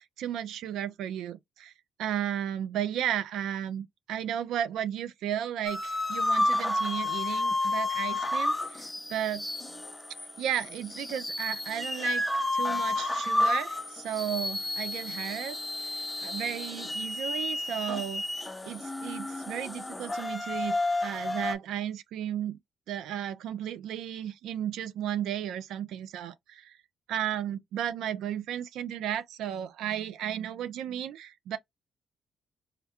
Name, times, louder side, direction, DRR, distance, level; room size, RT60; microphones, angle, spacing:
voice 1, 0.0-1.7 2.0-9.5 10.4-12.2 12.5-15.6 16.2-18.2 18.6-22.6 22.9-26.8 27.1-31.6, right 10 dB, 85° right, 0.5 m, -34 dB
sound 1, 5.7-21.6, left 2 dB, 15° left, 0.5 m, -31 dB
3.6 x 2.3 x 2.8 m
cardioid pair, 90°, 0 cm